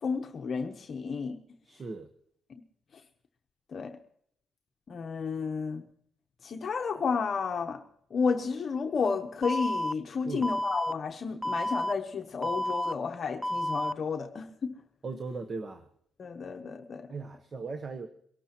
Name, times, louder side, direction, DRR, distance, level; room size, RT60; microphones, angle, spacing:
voice 1, 0.0-1.4 3.7-4.0 4.9-5.8 6.4-7.8 8.1-14.8 16.2-17.1, left 5 dB, 45° left, 5 dB, 0.8 m, -32 dB
voice 2, 1.6-2.1 10.2-10.5 15.0-15.9 17.1-18.1, right 4 dB, 40° right, 9 dB, 1.0 m, -38 dB
Alarm, 9.4-9.9 10.4-10.9 11.4-11.9 12.4-12.9 13.4-13.9, left 1 dB, 5° right, 0.4 m, -30 dB
23.5 x 12.0 x 3.0 m, 0.67 s
cardioid pair, 90°, 0 cm